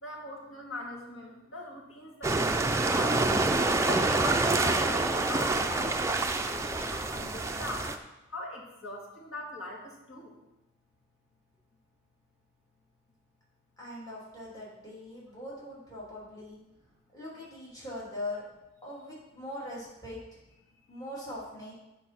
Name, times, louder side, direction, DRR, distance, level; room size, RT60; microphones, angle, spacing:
voice 1, 0.0-3.3 3.8-6.1 6.4-7.9 8.3-10.4, left 1 dB, 70° left, -2 dB, 2.3 m, -40 dB
sound 1, 2.2-8.0, right 2 dB, 15° right, 0.4 m, -27 dB
voice 2, 13.8-16.6 17.1-18.5 18.8-20.2 20.9-21.7, left 1 dB, 15° left, -7 dB, 2.7 m, -41 dB
8.9 x 5.3 x 5.9 m, 0.97 s
head